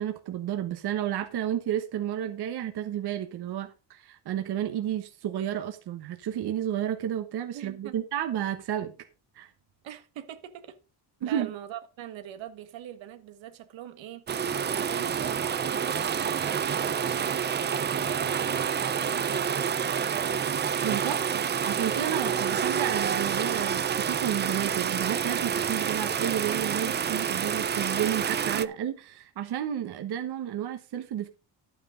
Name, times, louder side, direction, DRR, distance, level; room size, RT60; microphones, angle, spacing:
voice 1, 0.0-8.9 9.3-9.5 11.2-11.5 20.8-31.3, right 10 dB, 60° right, 1.2 m, -31 dB
voice 2, 7.5-7.9 9.8-10.8 11.2-14.2 14.7-20.4, right 11 dB, 85° right, 1.5 m, -43 dB
sound 1, 14.3-28.6, right 7 dB, 25° right, 0.4 m, -28 dB
11.5 x 8.6 x 3.8 m
cardioid pair, 150°, 44 cm